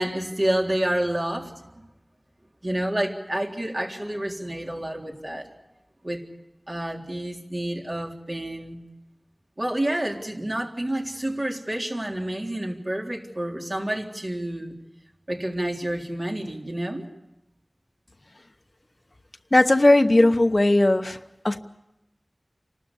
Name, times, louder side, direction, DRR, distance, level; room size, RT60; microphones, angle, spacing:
voice 1, 0.0-1.6 2.6-5.5 6.0-6.2 6.7-8.8 9.6-14.8 15.3-17.1, right 1 dB, 45° right, 0 dB, 3.7 m, -29 dB
voice 2, 19.5-21.2 21.4-21.6, left 2 dB, 50° left, 9 dB, 1.0 m, -17 dB
28.5 x 12.5 x 10.0 m, 0.94 s
wide cardioid pair, 45°, 0 cm